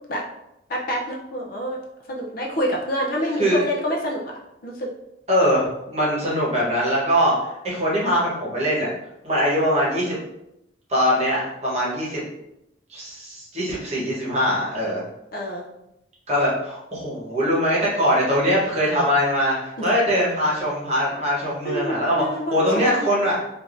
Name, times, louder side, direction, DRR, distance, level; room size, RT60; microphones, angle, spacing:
voice 1, 0.7-1.8 2.1-4.3 4.6-4.9 15.3-15.7 19.8-19.9 21.6-23.1, equal, 50° left, 0 dB, 0.5 m, -27 dB
voice 2, 5.3-7.3 7.6-8.9 9.2-10.2 10.9-12.2 12.9-15.0 16.3-22.2 22.5-23.4, equal, 35° right, -6 dB, 1.1 m, -22 dB
3.4 x 2.5 x 2.5 m, 0.84 s
head